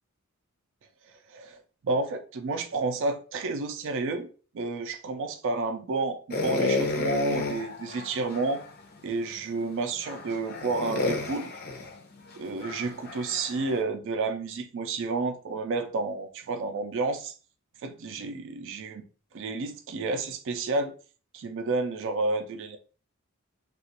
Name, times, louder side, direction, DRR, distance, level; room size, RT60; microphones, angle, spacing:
voice 1, 1.3-4.3 4.5-8.6 9.0-11.5 12.4-17.3 17.8-19.0 19.3-20.9 21.3-22.8, right 3 dB, 60° right, 0.4 m, -30 dB
sound 1, 6.3-8.7 9.3-9.4 10.0-13.8, left 3 dB, 45° left, 0.5 m, -31 dB
2.8 x 2.3 x 2.8 m
head